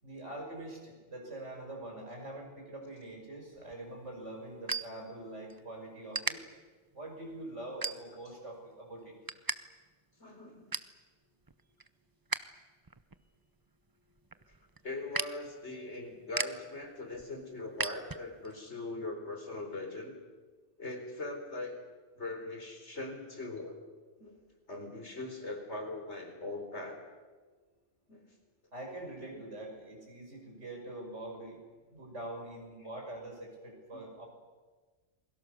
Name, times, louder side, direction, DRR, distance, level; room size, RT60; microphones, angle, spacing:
voice 1, 0.0-6.4 6.9-9.1 28.7-34.3, right 1 dB, 90° right, 1 dB, 6.2 m, -44 dB
sound 1, 3.5-5.6 6.1-6.3 6.9-7.1 7.8-8.4 8.8-9.6 9.9-10.0 10.3-11.0 11.4-12.5 12.8-18.5, right 3 dB, 20° right, 0.7 m, -38 dB
voice 2, 10.2-10.6 14.8-20.2 20.8-21.8 22.2-23.8 24.2-24.3 24.7-27.0 28.1-28.2 29.3-29.4 33.9-34.1, left 2 dB, 75° left, 3 dB, 4.5 m, -41 dB
28.5 x 22.0 x 6.7 m, 1.4 s
omnidirectional pair, 1.2 m